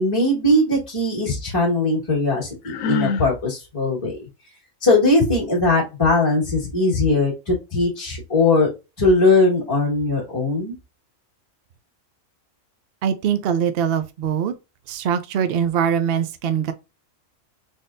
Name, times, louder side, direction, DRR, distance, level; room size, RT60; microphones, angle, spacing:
voice 1, 0.0-4.2 4.8-8.7 9.0-10.7, left 2 dB, 25° left, 1.6 m, -20 dB
Sigh, 2.6-3.3, left 6 dB, 80° left, 1.0 m, -25 dB
voice 2, 13.0-14.5 14.9-16.7, right 8 dB, 65° right, 0.6 m, -22 dB
4.0 x 3.5 x 2.5 m
omnidirectional pair, 1.4 m